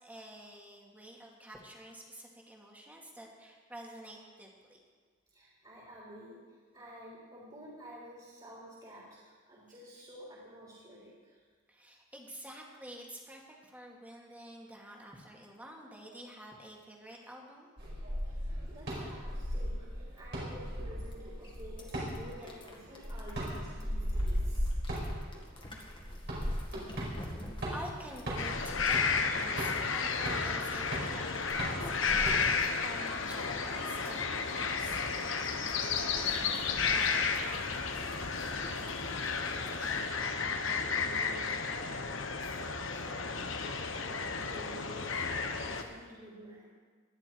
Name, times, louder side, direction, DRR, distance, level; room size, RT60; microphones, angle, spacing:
voice 1, 0.0-4.8 11.7-17.7 25.1-25.5 27.7-35.0 36.6-36.8 39.5-39.8, right 1 dB, 10° right, -1 dB, 2.2 m, -49 dB
voice 2, 5.3-11.4 18.3-24.7 26.1-26.2 35.3-37.2 38.2-46.7, right 1 dB, 25° right, -6 dB, 3.6 m, -51 dB
sound 1, 17.8-32.7, equal, 60° right, 5.1 m, -37 dB
sound 2, 21.1-21.2 21.4-40.1, left 1 dB, 25° left, 2.0 m, -49 dB
sound 3, 28.4-45.8, left 5 dB, 70° left, 1.2 m, -33 dB
19.5 x 12.0 x 4.7 m, 1.5 s
head